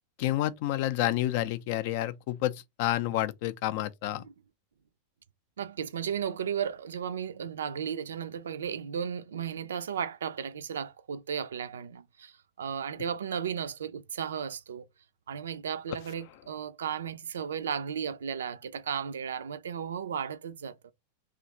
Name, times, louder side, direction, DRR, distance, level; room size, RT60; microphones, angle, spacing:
voice 1, 0.2-4.2, left 14 dB, 50° left, 0.4 m, -29 dB
voice 2, 5.6-14.8 15.3-20.8, right 7 dB, 65° right, 0.4 m, -35 dB
3.0 x 2.4 x 4.1 m
figure-of-eight pair, 90°, 0 cm